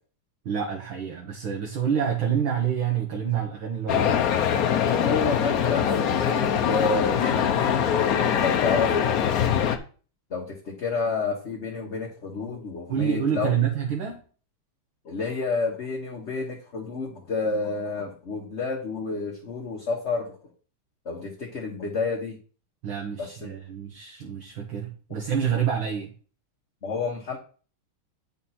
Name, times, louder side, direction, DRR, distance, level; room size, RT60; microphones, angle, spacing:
voice 1, 0.5-4.2 12.9-14.2 22.8-26.1, right 8 dB, 70° right, 0 dB, 2.1 m, -27 dB
sound 1, 3.9-9.8, left 8 dB, 60° left, 1.0 m, -23 dB
voice 2, 4.6-9.1 10.3-13.5 15.0-20.3 21.0-22.4 23.2-23.5 26.8-27.4, left 4 dB, 40° left, 0 dB, 1.3 m, -30 dB
9.3 x 5.3 x 4.2 m, 0.39 s
omnidirectional pair, 2.4 m